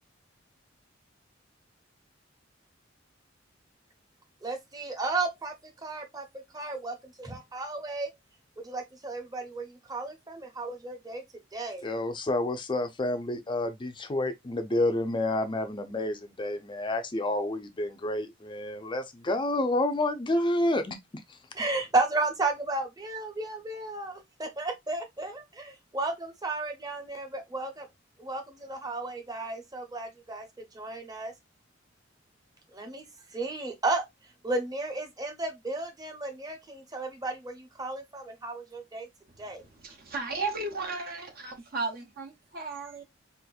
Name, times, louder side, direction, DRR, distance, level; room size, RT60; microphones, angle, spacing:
voice 1, 4.4-5.5 5.8-6.2 6.5-8.1 8.6-11.2 11.5-11.8 21.5-27.9 28.2-30.4 30.7-31.3 32.7-33.0 33.3-34.0 34.4-39.1 39.4-39.6, right 2 dB, 20° right, 0.8 m, -33 dB
voice 2, 11.8-21.0, left 1 dB, 25° left, 0.5 m, -29 dB
voice 3, 39.6-43.0, right 3 dB, 50° right, 0.7 m, -35 dB
4.2 x 2.5 x 2.3 m
head